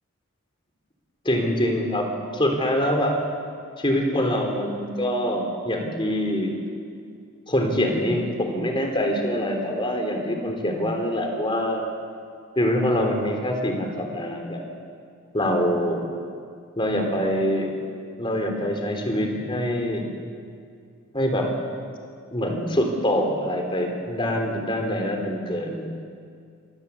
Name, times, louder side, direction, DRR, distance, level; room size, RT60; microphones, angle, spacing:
voice 1, 1.2-2.1 2.3-3.2 3.8-6.5 7.5-11.8 12.6-14.6 15.3-16.1 16.8-17.7 18.2-20.1 21.1-21.5 22.3-25.9, equal, 20° left, 3 dB, 3.6 m, -24 dB
26.0 x 19.0 x 8.4 m, 2.3 s
head